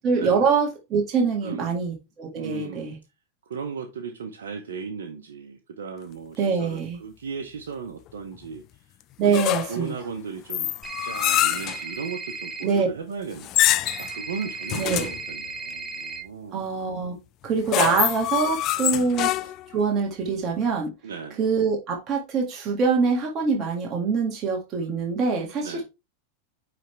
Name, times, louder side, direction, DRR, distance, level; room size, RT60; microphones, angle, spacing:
voice 1, 0.0-3.0 6.4-7.0 9.2-9.9 12.6-12.9 14.8-15.1 16.5-17.2 17.4-20.9 21.4-25.8, right 5 dB, 35° right, 1.8 m, -24 dB
voice 2, 1.4-1.8 2.3-2.9 3.5-8.6 9.2-10.7 11.0-16.7 17.8-18.0 18.9-19.1 21.0-21.4 25.6-25.8, right 6 dB, 85° right, 0.9 m, -36 dB
sound 1, 9.3-9.9 10.5-11.8 13.4-14.1 14.7-15.2 17.4-19.7, left 15 dB, 45° left, 0.5 m, -25 dB
sound 2, 10.8-12.6 13.9-16.2, right 4 dB, 5° right, 2.2 m, -35 dB
9.1 x 3.4 x 3.3 m
hypercardioid pair, 115°, 0 cm